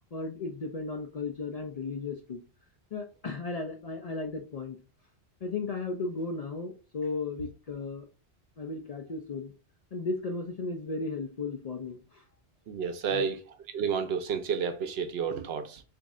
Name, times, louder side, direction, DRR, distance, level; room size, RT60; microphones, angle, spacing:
voice 1, 0.1-2.4 2.9-4.8 5.4-8.1 8.6-9.5 9.9-12.3 13.1-13.3, left 3 dB, 55° left, 0.4 m, -35 dB
voice 2, 12.7-15.8, right 6 dB, 70° right, 0.8 m, -31 dB
3.1 x 2.6 x 3.5 m
omnidirectional pair, 1.1 m